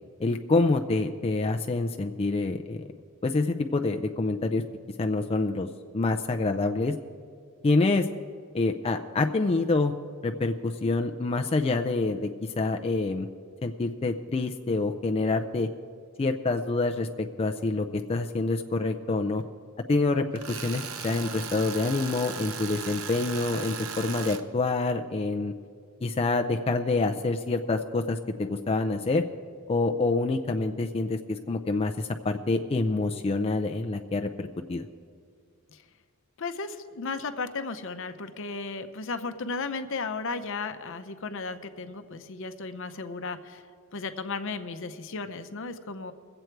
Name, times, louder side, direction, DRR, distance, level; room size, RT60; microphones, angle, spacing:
voice 1, 0.2-2.9 3.2-4.6 5.0-5.7 5.9-6.9 7.6-8.1 8.5-9.9 10.2-13.3 13.6-15.7 16.2-19.4 19.9-25.5 26.0-29.2 29.7-34.9, left 3 dB, 30° left, 5 dB, 0.4 m, -27 dB
Tools, 20.4-24.4, right 7 dB, 75° right, 0.8 m, -37 dB
voice 2, 36.4-43.6 43.9-46.1, left 4 dB, 65° left, 9 dB, 0.7 m, -35 dB
22.5 x 7.9 x 4.6 m, 2.2 s
head